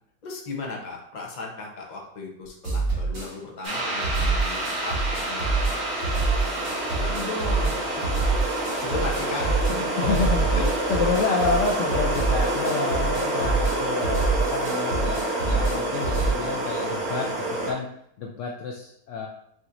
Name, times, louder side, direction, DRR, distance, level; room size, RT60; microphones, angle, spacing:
voice 1, 0.2-5.0 5.3-5.8 6.4-8.1 8.8-9.9 10.5-10.7, left 4 dB, 35° left, -1 dB, 0.7 m, -36 dB
sound 1, 2.6-3.3 3.6-16.3, right 3 dB, 80° right, 2.6 m, -26 dB
sound 2, 3.6-17.7, right 1 dB, 60° right, 1.9 m, -28 dB
voice 2, 10.0-10.5 10.9-17.9 18.2-19.3, left 5 dB, 75° left, 0 dB, 0.7 m, -29 dB
6.1 x 2.9 x 2.6 m, 0.73 s
omnidirectional pair, 1.9 m